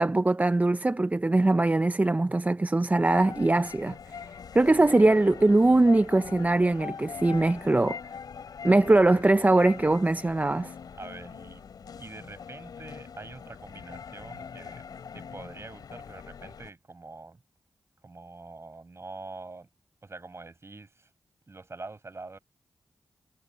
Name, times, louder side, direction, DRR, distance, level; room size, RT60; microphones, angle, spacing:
voice 1, 0.0-4.3 4.5-8.0 8.6-10.7, right 2 dB, 25° right, 0.6 m, -22 dB
sound 1, 3.0-16.7, left 6 dB, 80° left, 4.2 m, -42 dB
voice 2, 5.0-5.4 11.0-11.6 12.0-14.9 15.1-17.4 18.0-19.7 20.0-21.1 21.5-22.4, right 3 dB, 40° right, 7.3 m, -45 dB
cardioid pair, 50°, 7 cm